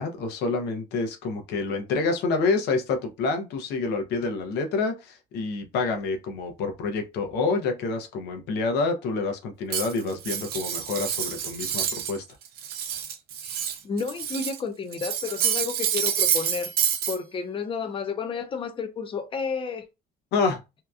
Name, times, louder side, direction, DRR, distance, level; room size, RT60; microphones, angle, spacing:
voice 1, 0.0-12.2 20.3-20.6, left 4 dB, 80° left, 0.7 m, -27 dB
Cutlery silverware, 9.7-12.2 12.5-14.6 14.9-17.2, right 9 dB, 65° right, 0.5 m, -28 dB
voice 2, 13.4-16.7 17.1-19.8, left 5 dB, 30° left, 0.5 m, -31 dB
2.8 x 2.3 x 2.3 m
cardioid pair, 110°, 17 cm